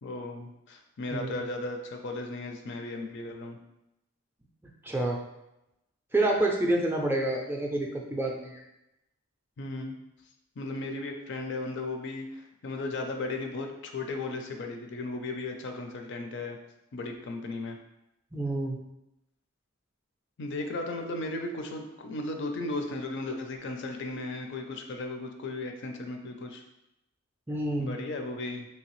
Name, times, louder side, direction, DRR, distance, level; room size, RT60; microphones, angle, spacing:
voice 1, 0.0-3.6 9.6-10.0 10.6-16.6 16.9-17.8 20.4-26.6 27.8-28.7, left 2 dB, 55° left, 4 dB, 0.4 m, -36 dB
voice 2, 4.8-5.2 6.1-8.6 18.3-18.8 27.5-28.0, right 1 dB, 10° right, -1 dB, 0.4 m, -28 dB
3.3 x 2.8 x 3.0 m, 0.90 s
head